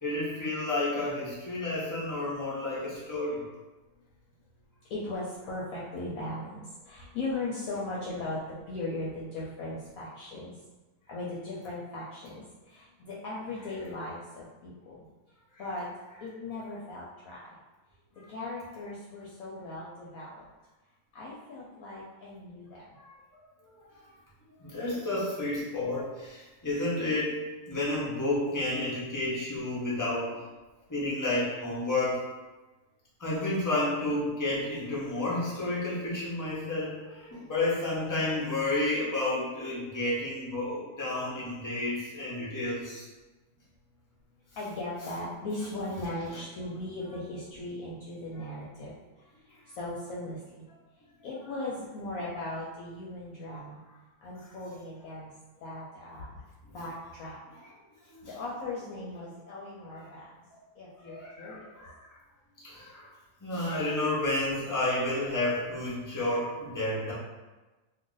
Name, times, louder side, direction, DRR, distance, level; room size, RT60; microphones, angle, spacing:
voice 1, 0.0-3.4 23.0-23.4 24.6-30.4 30.9-32.2 33.2-43.0 58.1-58.3 59.9-60.1 61.0-61.9 62.6-63.1 63.4-67.1, left 2 dB, 25° left, -7 dB, 0.4 m, -31 dB
voice 2, 4.9-10.5 11.1-15.0 15.6-15.9 16.2-17.6 18.3-20.4 21.1-23.0 44.6-48.9 49.7-50.6 51.2-53.8 54.2-55.3 55.6-56.4 56.7-57.4 58.2-60.3 60.8-61.8, left 2 dB, 65° left, -6 dB, 0.9 m, -38 dB
2.5 x 2.4 x 3.8 m, 1.2 s
omnidirectional pair, 1.7 m